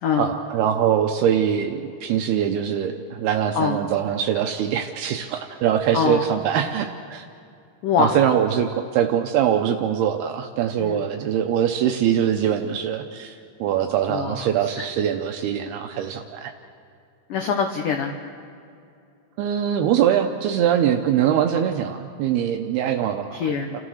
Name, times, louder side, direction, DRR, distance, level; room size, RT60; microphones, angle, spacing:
voice 1, 0.2-7.3 8.0-16.5 19.4-23.3 23.7-23.8, right 9 dB, 80° right, 5 dB, 2.4 m, -23 dB
voice 2, 7.8-8.2 10.8-11.1 14.1-14.9 17.3-18.1 23.3-23.8, left 6 dB, 80° left, 4 dB, 1.8 m, -24 dB
29.5 x 14.0 x 6.5 m, 2.5 s
omnidirectional pair, 5.3 m